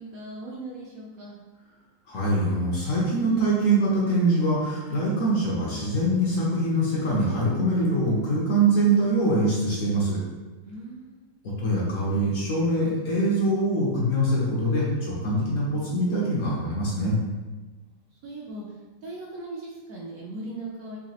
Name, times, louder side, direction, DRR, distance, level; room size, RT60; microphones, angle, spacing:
voice 1, 0.0-1.4 10.6-11.4 17.8-21.0, right 2 dB, 70° right, -3 dB, 0.9 m, -39 dB
voice 2, 2.1-10.2 11.4-17.2, right 1 dB, 60° left, -5 dB, 1.0 m, -23 dB
4.0 x 2.8 x 2.8 m, 1.3 s
omnidirectional pair, 1.8 m